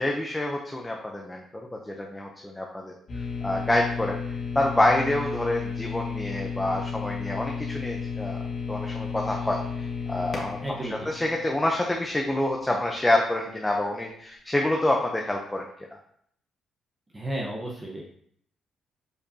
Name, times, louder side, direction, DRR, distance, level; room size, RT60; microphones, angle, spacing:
voice 1, 0.0-8.4 8.7-10.6 11.1-15.6, left 1 dB, 10° left, 0 dB, 0.8 m, -27 dB
sound 1, 3.1-12.0, left 6 dB, 50° left, 1.8 m, -33 dB
voice 2, 10.6-11.1 17.1-18.0, right 1 dB, 20° right, -3 dB, 1.1 m, -33 dB
6.8 x 5.1 x 2.9 m, 0.67 s
cardioid pair, 90°, 0 cm